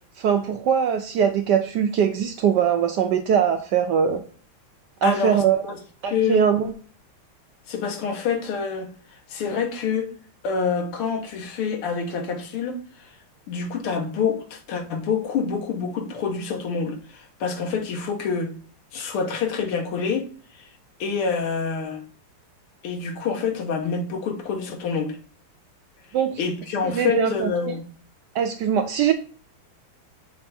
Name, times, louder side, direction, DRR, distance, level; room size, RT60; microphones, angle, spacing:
voice 1, 0.2-4.2 5.0-5.6 6.0-6.7 26.1-26.4 26.8-27.8 28.3-29.1, right 7 dB, 85° right, 0.9 m, -21 dB
voice 2, 5.0-5.4 5.7-5.8 6.0-6.5 7.7-8.9 9.3-10.1 10.4-13.1 13.5-18.5 18.9-20.3 20.6-20.7 21.0-22.0 22.8-25.2 26.4-27.9, left 5 dB, 80° left, 2.0 m, -27 dB
7.2 x 3.4 x 4.2 m
omnidirectional pair, 2.4 m